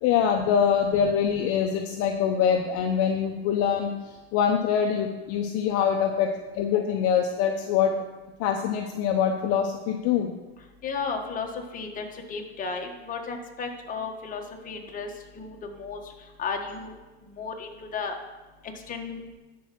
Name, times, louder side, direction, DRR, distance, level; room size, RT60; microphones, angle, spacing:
voice 1, 0.0-3.9 4.3-6.3 6.5-7.9 8.4-10.3, left 8 dB, 45° left, 4 dB, 0.9 m, -24 dB
voice 2, 10.8-11.5 11.7-15.1 15.3-16.0 16.4-16.9 17.4-18.2 18.9-19.2, left 5 dB, 25° left, 2 dB, 1.5 m, -34 dB
11.0 x 4.8 x 6.0 m, 1.1 s
supercardioid pair, 120°, 32 cm